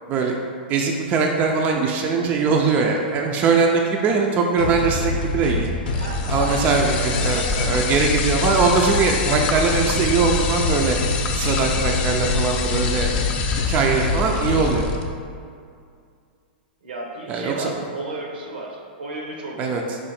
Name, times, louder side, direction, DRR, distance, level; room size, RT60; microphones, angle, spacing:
voice 1, 0.7-5.7 6.3-11.0 11.3-13.2 13.7-14.9 17.3-17.8 19.6-20.0, right 4 dB, 30° right, 1 dB, 0.4 m, -21 dB
sound 1, 4.6-14.9, left 3 dB, 80° left, 0.5 m, -26 dB
sound 2, 5.9-15.0, left 5 dB, 30° left, 0.5 m, -27 dB
voice 2, 5.9-7.5 16.8-19.8, right 2 dB, 90° right, 0 dB, 0.9 m, -33 dB
4.7 x 2.5 x 4.2 m, 2.3 s
hypercardioid pair, 135°, 5 cm